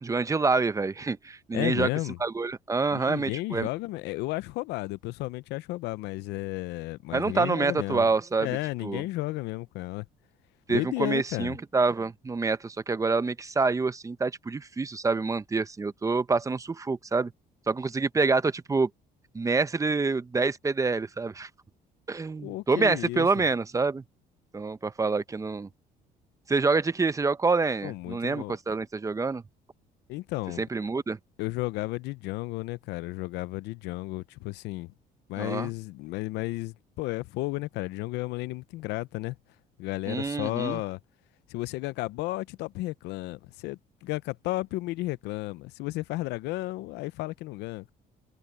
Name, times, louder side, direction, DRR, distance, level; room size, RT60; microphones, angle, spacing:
voice 1, 0.0-1.9 2.2-3.7 7.1-8.5 8.8-9.0 10.7-17.3 17.7-18.9 19.3-21.5 22.1-24.0 24.5-25.7 26.5-29.4 30.6-31.2 35.4-35.7 40.1-40.8, right 4 dB, 20° right, 0.8 m, -27 dB
voice 2, 1.5-2.2 2.9-8.1 8.4-10.1 10.7-11.6 22.4-23.4 27.8-28.6 30.1-30.6 31.4-34.9 35.3-39.4 39.8-41.0 41.5-47.9, left 19 dB, 90° left, 0.6 m, -33 dB
cardioid pair, 110°, 17 cm